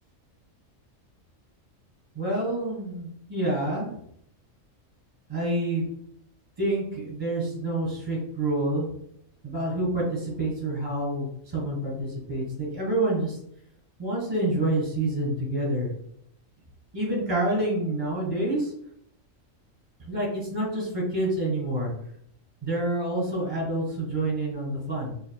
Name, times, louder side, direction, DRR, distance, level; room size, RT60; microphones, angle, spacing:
voice 1, 2.1-3.9 5.3-5.8 6.6-8.9 9.4-11.3 11.5-13.3 14.0-15.9 16.9-18.7 20.1-21.9 22.6-25.1, right 1 dB, 20° right, -3 dB, 1.6 m, -27 dB
5.1 x 2.6 x 2.3 m, 0.69 s
omnidirectional pair, 1.4 m